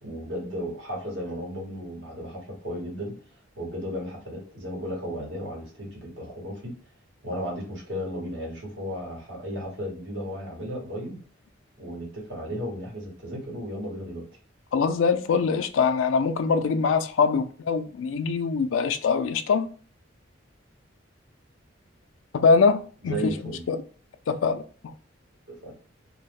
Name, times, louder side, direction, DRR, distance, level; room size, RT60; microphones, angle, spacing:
voice 1, 0.0-3.2 3.6-6.7 7.2-11.2 11.8-14.3 23.0-23.6 25.5-25.7, equal, 65° right, 1.1 m, -34 dB
voice 2, 14.7-19.7 22.3-23.2 23.4-23.8 24.3-24.6, left 5 dB, 85° left, 0.4 m, -23 dB
2.3 x 2.0 x 3.3 m
head